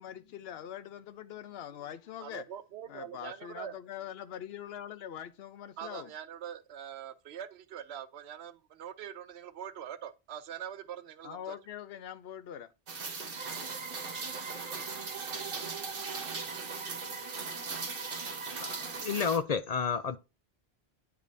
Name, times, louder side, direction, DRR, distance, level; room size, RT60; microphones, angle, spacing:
voice 1, 0.0-2.5 2.9-6.1 11.2-12.7, left 10 dB, 75° left, 0.8 m, -43 dB
voice 2, 2.2-3.8 5.8-11.6, right 9 dB, 85° right, 0.9 m, -43 dB
Rain, 12.9-19.4, right 4 dB, 60° right, 1.3 m, -39 dB
sound 1, 13.4-19.0, right 5 dB, 35° right, 0.6 m, -44 dB
voice 3, 18.6-20.2, left 6 dB, 50° left, 0.5 m, -31 dB
9.1 x 5.1 x 2.7 m
omnidirectional pair, 1.1 m